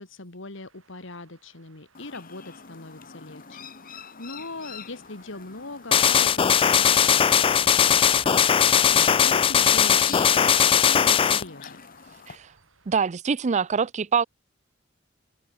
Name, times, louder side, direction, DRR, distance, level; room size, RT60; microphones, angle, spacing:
voice 1, 0.0-11.8, left 2 dB, 70° left, 2.3 m, -40 dB
sound 1, 0.5-12.9, right 2 dB, 80° right, 4.9 m, -56 dB
Chirp tweet, 1.9-12.4, left 6 dB, 45° left, 1.7 m, -44 dB
sound 2, 5.9-11.4, left 8 dB, 25° left, 0.3 m, -19 dB
voice 2, 12.9-14.2, right 6 dB, 35° right, 0.5 m, -24 dB
head